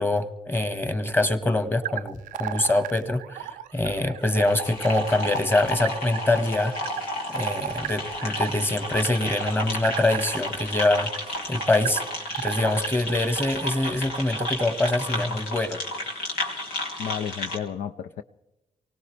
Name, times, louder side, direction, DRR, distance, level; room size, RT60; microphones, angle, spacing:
voice 1, 0.0-6.8 7.3-11.1 11.5-12.0 12.4-15.8, left 2 dB, 15° left, 1.5 m, -24 dB
sound 1, 1.8-15.0, right 12 dB, 80° right, 0.5 m, -36 dB
sound 2, 4.2-17.6, left 2 dB, 90° left, 1.6 m, -32 dB
voice 2, 17.0-18.2, left 8 dB, 70° left, 0.5 m, -32 dB
23.5 x 18.0 x 3.3 m
hypercardioid pair, 45°, 14 cm